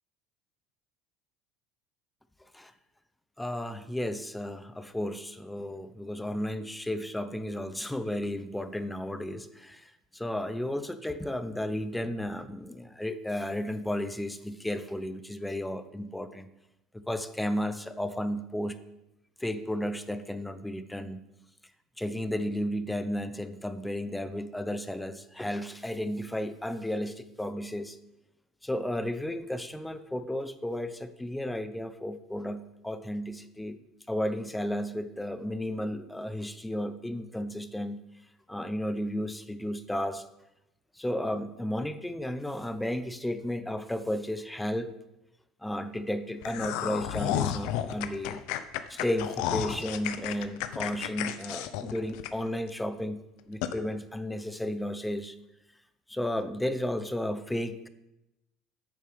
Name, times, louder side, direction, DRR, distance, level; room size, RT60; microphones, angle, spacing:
voice 1, 3.4-16.5 16.9-18.8 19.4-21.2 22.0-28.0 28.6-33.8 34.1-38.0 38.5-40.2 41.0-44.9 45.6-48.4 48.9-55.4 56.1-57.9, left 1 dB, 5° left, 12 dB, 0.7 m, -33 dB
sound 1, 46.4-52.7 53.1-53.2 53.6-53.8, left 11 dB, 75° left, 0.7 m, -32 dB
8.8 x 6.5 x 6.8 m, 0.92 s
supercardioid pair, 115°, 0 cm